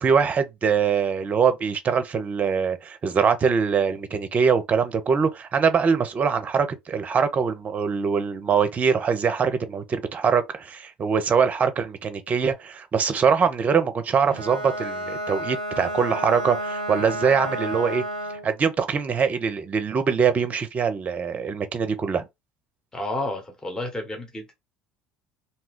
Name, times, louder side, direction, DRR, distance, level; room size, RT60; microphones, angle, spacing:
voice 1, 0.0-18.0 18.4-22.2, right 6 dB, 35° right, 0.6 m, -23 dB
Bowed string instrument, 14.3-18.5, right 1 dB, 85° right, 0.4 m, -31 dB
voice 2, 22.9-24.5, left 2 dB, 15° left, 1.1 m, -31 dB
2.7 x 2.2 x 3.5 m
hypercardioid pair, 65°, 4 cm